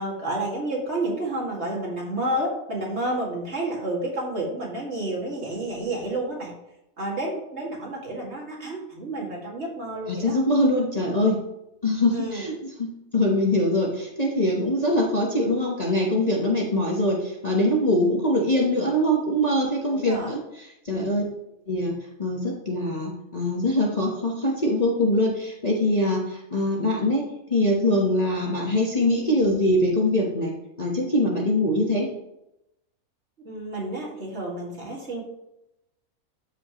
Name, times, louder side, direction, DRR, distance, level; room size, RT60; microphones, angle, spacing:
voice 1, 0.0-6.5 7.0-10.4 12.1-12.5 19.9-20.3 20.9-21.2 33.4-35.2, right 1 dB, 50° right, -3 dB, 2.3 m, -30 dB
voice 2, 10.1-11.4 11.8-12.5 12.8-21.2 21.7-21.9 22.2-27.2 27.5-30.5 30.8-32.1, left 1 dB, 30° left, -3 dB, 1.1 m, -23 dB
12.5 x 5.0 x 3.0 m, 0.86 s
omnidirectional pair, 1.5 m